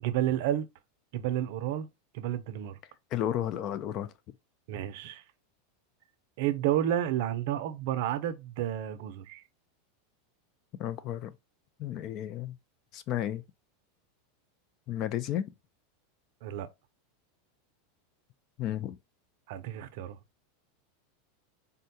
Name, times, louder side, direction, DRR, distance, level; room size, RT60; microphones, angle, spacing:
voice 1, 0.0-0.7 1.1-1.9 2.1-2.8 4.7-5.2 6.4-9.4 16.4-16.7 19.5-20.2, right 11 dB, 65° right, 0.5 m, -31 dB
voice 2, 3.1-4.1 10.8-11.3 11.8-12.6 12.9-13.4 14.9-15.4 18.6-19.0, left 11 dB, 45° left, 0.4 m, -32 dB
3.7 x 2.2 x 2.7 m
supercardioid pair, 130°, 0 cm